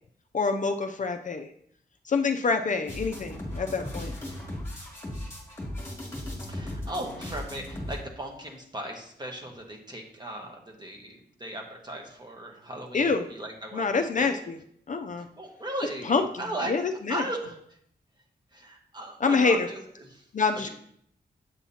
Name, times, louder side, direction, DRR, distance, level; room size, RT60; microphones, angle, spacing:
voice 1, 0.3-1.5 2.0-4.1 12.9-13.3 13.7-14.6 14.9-15.3 16.1-17.2 19.2-19.7 20.3-20.7, left 4 dB, 45° left, 6 dB, 0.4 m, -26 dB
sound 1, 2.9-8.0, left 1 dB, 15° left, 2.2 m, -37 dB
voice 2, 6.5-14.4 15.4-16.7 17.1-17.6 18.5-20.3 20.5-20.7, right 1 dB, 25° right, 1 dB, 1.1 m, -37 dB
8.2 x 7.1 x 2.8 m, 0.67 s
wide cardioid pair, 170°, 18 cm